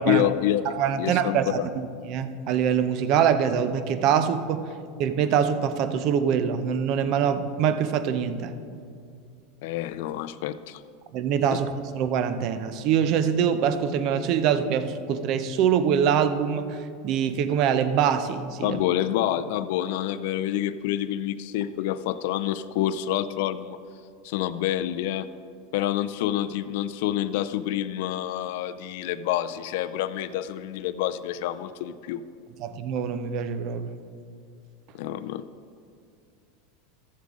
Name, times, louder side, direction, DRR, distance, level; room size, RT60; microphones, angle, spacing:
voice 1, 0.0-0.6 1.0-1.7 9.6-10.8 18.6-23.8 24.2-25.3 25.7-32.3 34.9-35.4, left 12 dB, 65° left, 13 dB, 0.4 m, -27 dB
voice 2, 0.7-4.7 5.0-8.5 11.1-18.8 32.6-33.9, right 8 dB, 50° right, 11 dB, 0.6 m, -24 dB
14.0 x 7.4 x 3.7 m, 2.3 s
supercardioid pair, 135°, 0 cm